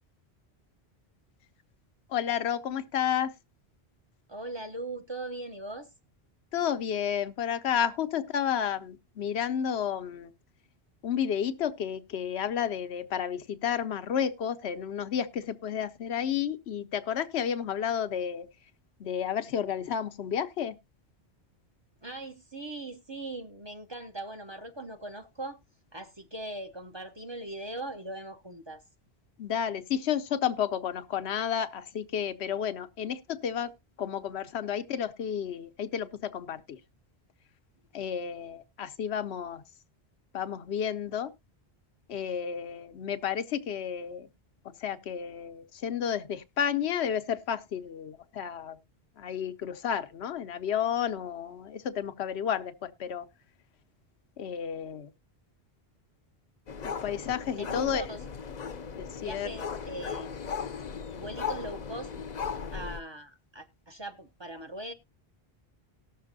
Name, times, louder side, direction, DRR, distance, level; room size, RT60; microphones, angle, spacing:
voice 1, 2.1-3.3 6.5-10.3 11.0-18.5 19.0-20.8 29.4-33.7 34.0-36.8 37.9-39.6 40.3-41.3 42.1-44.3 44.8-48.8 49.2-53.3 54.4-55.1 56.8-58.0 59.0-59.5, left 8 dB, 85° left, 1.0 m, -31 dB
voice 2, 4.3-5.9 22.0-25.6 25.9-28.8 57.6-58.2 59.2-60.5 61.1-62.1 62.7-64.9, right 2 dB, 30° right, 0.7 m, -40 dB
sound 1, 56.7-63.0, left 6 dB, 50° left, 0.7 m, -37 dB
18.5 x 6.6 x 2.6 m
omnidirectional pair, 1.1 m